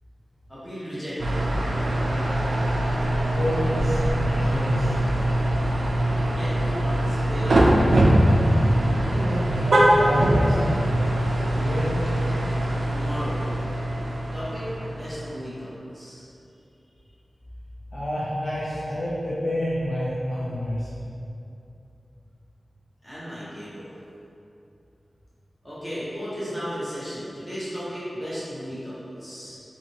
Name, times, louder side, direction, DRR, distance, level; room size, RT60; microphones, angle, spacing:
voice 1, 0.5-1.9 6.3-8.0 12.9-13.5 14.3-16.3 23.0-24.0 25.6-29.6, equal, 15° left, -11 dB, 1.0 m, -35 dB
sound 1, 1.2-15.5, right 1 dB, 80° right, 0.3 m, -22 dB
voice 2, 3.3-5.0 9.1-10.7 11.6-12.0 17.9-21.0, equal, 55° left, -8 dB, 0.4 m, -28 dB
2.7 x 2.5 x 2.8 m, 2.7 s
wide cardioid pair, 95°, 0 cm